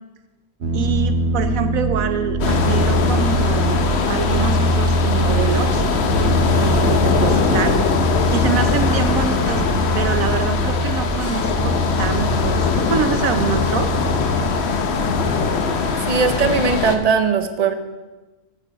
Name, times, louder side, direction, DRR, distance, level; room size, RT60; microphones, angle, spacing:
sound 1, 0.6-15.4, equal, 55° right, 1.1 m, -23 dB
voice 1, 0.7-5.8 6.5-7.8 8.3-9.6 9.9-13.9, right 6 dB, 80° right, 9 dB, 1.3 m, -25 dB
sound 2, 2.4-17.0, left 4 dB, 55° left, 1.0 m, -21 dB
sound 3, 8.3-13.8, left 2 dB, 20° left, 0.6 m, -34 dB
voice 2, 16.1-17.7, right 5 dB, 40° right, 8 dB, 0.6 m, -19 dB
7.7 x 6.6 x 7.6 m, 1.2 s
omnidirectional pair, 1.4 m